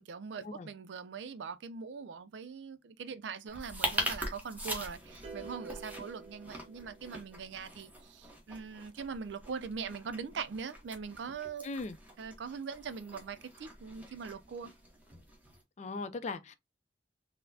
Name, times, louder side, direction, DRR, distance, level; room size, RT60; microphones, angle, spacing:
voice 1, 0.0-11.7 12.2-14.7, right 5 dB, 85° right, 0.4 m, -42 dB
sound 1, 3.5-15.6, equal, 10° right, 0.9 m, -42 dB
sound 2, 5.2-7.5, right 4 dB, 40° right, 1.0 m, -49 dB
voice 2, 11.6-12.0 15.8-16.5, left 3 dB, 40° left, 0.4 m, -38 dB
4.1 x 2.1 x 2.6 m
head